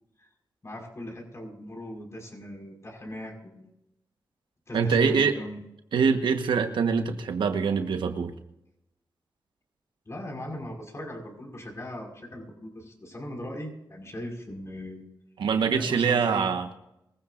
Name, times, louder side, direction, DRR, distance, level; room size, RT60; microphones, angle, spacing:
voice 1, 0.6-3.7 4.7-5.6 10.1-15.0 15.7-16.5, left 1 dB, 35° left, 1 dB, 5.4 m, -39 dB
voice 2, 4.7-5.3 5.9-8.3 15.4-16.7, right 6 dB, 90° right, 7 dB, 1.3 m, -24 dB
24.0 x 15.5 x 2.6 m, 0.85 s
cardioid pair, 65°, 8 cm